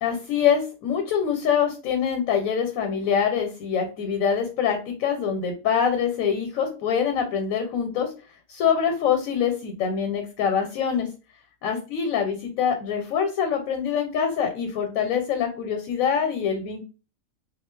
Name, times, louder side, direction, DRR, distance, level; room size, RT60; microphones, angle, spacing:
voice 1, 0.0-8.1 8.5-11.1 11.6-16.8, left 7 dB, 80° left, 4 dB, 1.0 m, -24 dB
2.4 x 2.3 x 3.1 m, 0.33 s
omnidirectional pair, 1.4 m